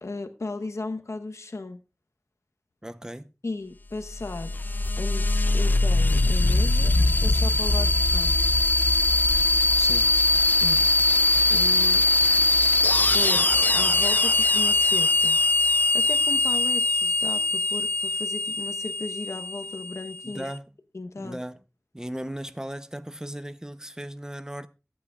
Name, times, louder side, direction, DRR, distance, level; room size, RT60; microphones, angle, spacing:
voice 1, 0.0-1.8 3.4-4.5 5.0-7.0 7.2-8.4 10.6-10.9 11.5-12.0 13.1-15.4 15.9-20.5 20.9-21.4, left 3 dB, 80° left, 1.0 m, -36 dB
voice 2, 2.8-3.3 9.7-10.1 20.2-20.8 21.2-21.6 21.9-24.7, right 1 dB, 15° right, 0.7 m, -37 dB
sound 1, 4.0-20.4, left 2 dB, 40° left, 0.4 m, -22 dB
22.5 x 8.6 x 2.4 m
wide cardioid pair, 50°, 5 cm